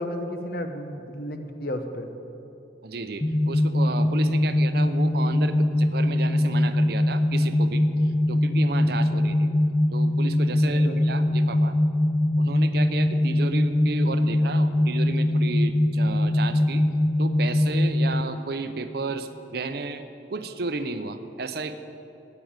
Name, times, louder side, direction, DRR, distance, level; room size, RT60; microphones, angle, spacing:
voice 1, 0.0-2.1 8.3-8.4 8.9-9.3 10.6-11.2, equal, 55° left, 6 dB, 1.0 m, -34 dB
voice 2, 2.8-9.5 9.9-11.8 12.4-16.8 17.2-21.7, right 3 dB, 55° right, 10 dB, 0.7 m, -33 dB
sound 1, 3.2-18.2, left 1 dB, 15° left, 0.4 m, -22 dB
10.0 x 9.3 x 8.8 m, 2.9 s
head